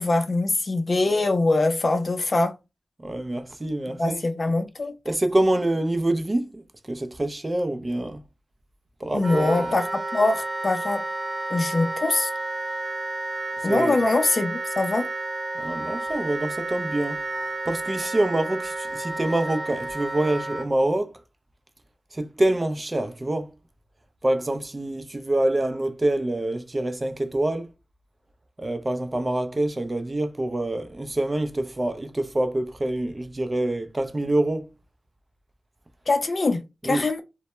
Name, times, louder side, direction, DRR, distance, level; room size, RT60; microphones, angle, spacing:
voice 1, 0.0-2.5 4.0-4.9 9.1-11.0 11.5-12.3 13.6-15.1 36.1-37.2, left 2 dB, 50° left, 0.5 m, -23 dB
voice 2, 3.0-4.2 5.1-6.6 6.9-8.2 9.0-9.7 13.7-14.0 15.5-17.2 17.7-21.2 22.1-23.5 24.2-27.7 28.6-34.7 36.8-37.1, right 1 dB, 35° right, 0.4 m, -26 dB
Wind instrument woodwind instrument, 9.2-20.7, right 2 dB, 55° right, 0.8 m, -31 dB
2.1 x 2.1 x 3.0 m
cardioid pair, 45°, 0 cm